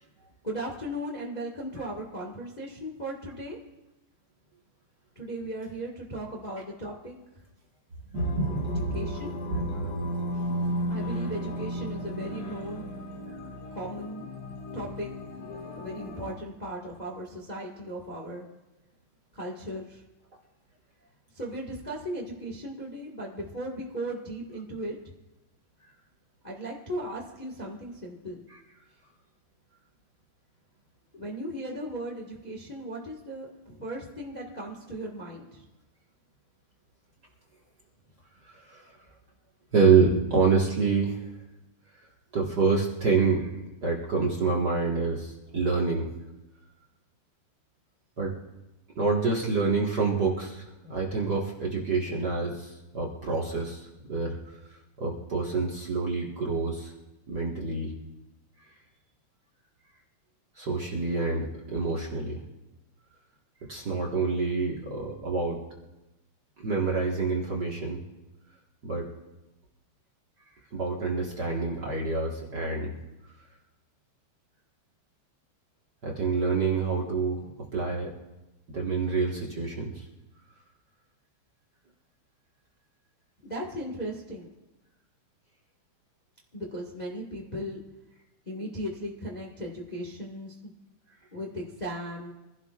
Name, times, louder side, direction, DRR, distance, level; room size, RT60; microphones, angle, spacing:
voice 1, 0.4-3.6 5.1-7.1 8.9-9.3 10.9-12.8 13.7-14.3 14.7-15.1 15.8-18.5 19.3-20.0 21.3-25.0 26.4-28.4 31.1-35.6 83.4-84.5 86.5-87.8 88.5-90.7 91.3-92.3, right 1 dB, 20° left, -1 dB, 1.2 m, -37 dB
sound 1, 8.1-16.3, equal, 60° left, 2.7 m, -34 dB
voice 2, 8.1-9.0 9.5-9.9 28.5-28.6 38.5-38.8 39.7-41.3 42.3-43.5 43.8-46.1 48.2-48.3 49.0-54.4 55.0-56.9 57.3-57.9 60.6-62.4 63.7-65.6 66.6-68.0 68.8-69.1 70.7-72.9 76.0-77.4 77.7-78.1 78.7-80.1, right 4 dB, 40° right, -3 dB, 1.7 m, -27 dB
26.0 x 16.0 x 2.5 m, 1.0 s
omnidirectional pair, 3.5 m